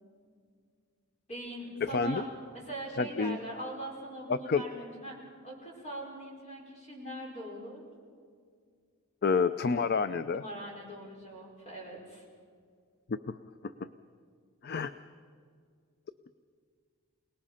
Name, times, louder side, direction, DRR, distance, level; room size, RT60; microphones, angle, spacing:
voice 1, 1.3-2.3 2.5-5.2 5.4-7.8 10.3-12.2, right 1 dB, 30° left, -2 dB, 5.5 m, -41 dB
voice 2, 1.8-2.2 3.0-3.4 4.3-4.6 9.2-10.4 13.1-13.4 13.6-13.9 14.6-14.9, left 5 dB, 45° left, 12 dB, 0.5 m, -29 dB
27.5 x 19.0 x 5.6 m, 2.1 s
head